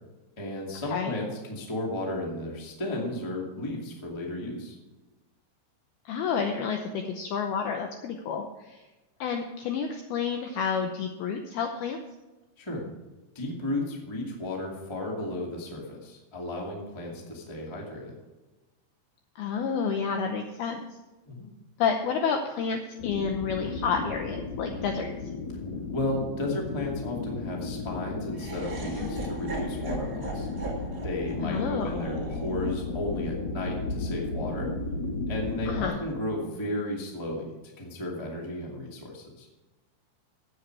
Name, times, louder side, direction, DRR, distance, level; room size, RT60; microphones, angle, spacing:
voice 1, 0.4-4.7 12.6-12.8 13.3-18.2 21.2-21.5 25.9-30.5 31.0-34.7 35.3-39.5, left 1 dB, 20° left, -1 dB, 0.7 m, -34 dB
voice 2, 6.1-8.8 9.2-12.0 19.4-20.8 21.8-25.1 31.4-31.9 35.7-36.0, left 6 dB, 80° left, 4 dB, 2.2 m, -30 dB
sound 1, 23.0-35.9, left 3 dB, 65° left, 1.8 m, -34 dB
Laughter, 28.3-34.5, right 3 dB, 70° right, 0.8 m, -40 dB
16.5 x 7.9 x 4.7 m, 1.1 s
omnidirectional pair, 5.5 m